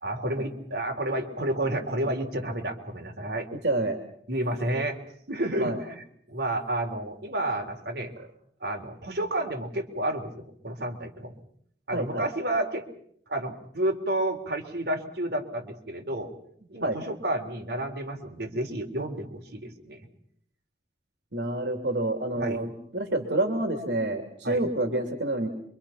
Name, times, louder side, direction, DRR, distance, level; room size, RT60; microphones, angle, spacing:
voice 1, 0.0-3.5 4.3-5.0 5.3-8.1 8.6-11.4 11.9-12.8 13.3-16.3 16.7-20.0 22.3-22.6 24.4-24.7, right 1 dB, 70° right, 1 dB, 3.7 m, -30 dB
voice 2, 3.6-4.0 5.6-5.8 11.9-12.3 16.8-17.0 21.3-25.5, right 2 dB, 85° right, 4 dB, 3.2 m, -28 dB
27.5 x 23.5 x 5.9 m, 0.66 s
head